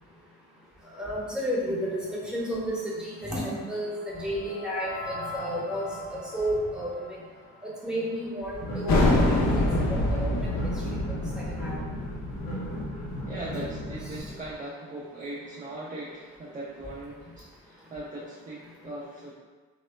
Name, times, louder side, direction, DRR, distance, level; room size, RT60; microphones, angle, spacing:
voice 1, 0.9-2.0 2.2-5.8 6.1-6.9 7.6-10.5 11.3-11.8, equal, ahead, -6 dB, 0.9 m, -32 dB
sound 1, 3.1-8.3, left 2 dB, 30° left, 1.1 m, -42 dB
sound 2, 8.5-14.2, equal, 85° left, 0.8 m, -36 dB
sound 3, 8.9-14.2, left 1 dB, 45° left, 0.6 m, -26 dB
voice 2, 13.3-19.3, right 1 dB, 20° right, -5 dB, 0.5 m, -39 dB
2.9 x 2.1 x 2.2 m, 1.3 s
hypercardioid pair, 40°, 36 cm